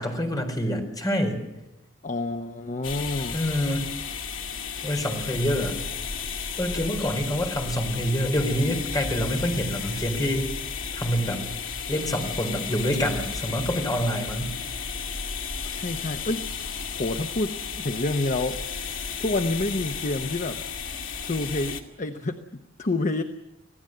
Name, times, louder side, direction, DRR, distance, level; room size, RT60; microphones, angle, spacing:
voice 1, 0.0-1.4 3.3-3.9 4.8-5.8 6.6-10.5 10.9-11.4 11.9-14.5, equal, 20° left, 4 dB, 4.4 m, -26 dB
voice 2, 2.0-3.4 15.6-16.5 16.9-18.6 19.2-20.6 21.2-23.2, left 2 dB, 40° left, 6 dB, 1.0 m, -28 dB
sound 1, 2.8-21.8, left 6 dB, 70° left, 2.4 m, -33 dB
26.0 x 17.0 x 7.9 m, 0.92 s
head